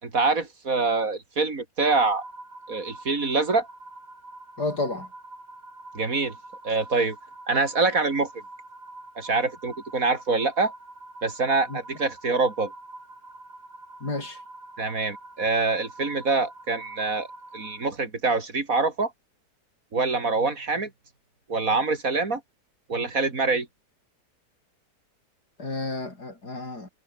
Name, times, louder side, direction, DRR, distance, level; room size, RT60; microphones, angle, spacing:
voice 1, 0.0-2.2 2.7-3.7 5.9-6.4 6.6-7.2 7.5-8.3 9.2-10.7 11.2-12.7 14.8-17.3 17.5-19.1 19.9-20.9 21.5-22.4 22.9-23.7, right 3 dB, 55° right, 3.6 m, -25 dB
sound 1, 1.8-17.9, right 2 dB, 75° right, 7.4 m, -45 dB
voice 2, 4.6-5.1 11.7-11.8 14.0-14.4 25.6-26.9, left 2 dB, 70° left, 7.2 m, -31 dB
omnidirectional pair, 1.8 m